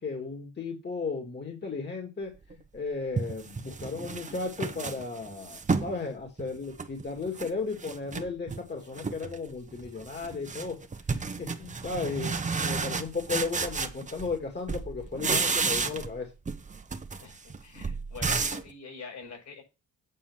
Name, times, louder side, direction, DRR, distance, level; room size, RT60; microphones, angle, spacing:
voice 1, 0.0-10.8 11.1-16.3, left 4 dB, 35° left, 2 dB, 2.3 m, -35 dB
sound 1, 2.5-2.6 3.2-6.0 6.4-7.5 7.8-8.6 9.0-9.4 9.7-14.4 14.7-16.2 16.5-18.7, right 4 dB, 25° right, 1.0 m, -32 dB
voice 2, 17.2-19.6, left 5 dB, 70° left, 2 dB, 6.6 m, -45 dB
8.9 x 4.6 x 7.2 m, 0.29 s
cardioid pair, 90°, 30 cm